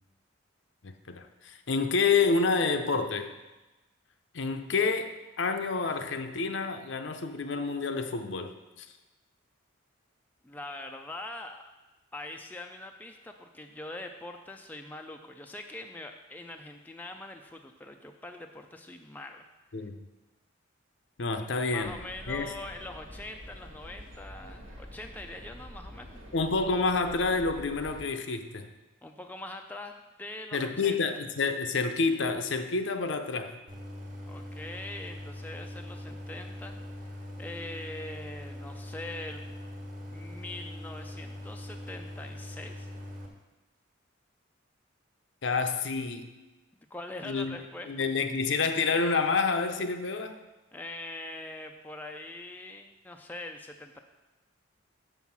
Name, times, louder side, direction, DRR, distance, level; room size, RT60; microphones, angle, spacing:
voice 1, 0.8-3.3 4.3-5.1 5.4-8.9 19.7-20.0 21.2-22.0 22.3-22.5 26.3-28.7 30.5-33.6 45.4-46.3 47.2-47.6 47.9-50.4, left 4 dB, 65° left, 7 dB, 0.6 m, -28 dB
voice 2, 10.4-11.6 12.1-19.9 21.3-26.2 29.0-31.0 34.3-39.4 40.1-42.9 46.9-47.9 50.7-54.0, left 2 dB, 10° left, 4 dB, 0.4 m, -43 dB
sound 1, 21.8-28.0, equal, 85° right, 1.6 m, -46 dB
Idling, 33.7-43.3, left 1 dB, 40° right, 1.4 m, -42 dB
7.1 x 5.6 x 5.9 m, 1.1 s
head